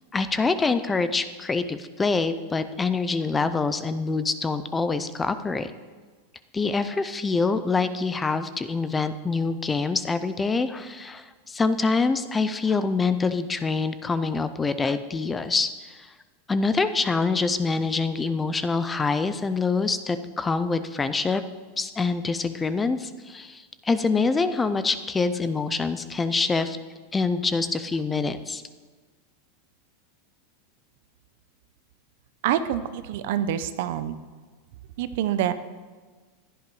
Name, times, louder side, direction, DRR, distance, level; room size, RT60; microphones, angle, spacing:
voice 1, 0.1-5.7 6.5-16.0 16.5-21.4 21.8-26.8 27.1-28.6, left 4 dB, 10° left, 12 dB, 0.4 m, -25 dB
voice 2, 32.4-34.2 35.0-35.5, right 10 dB, 50° right, 13 dB, 0.7 m, -26 dB
15.5 x 11.0 x 4.7 m, 1.4 s
supercardioid pair, 180°, 0 cm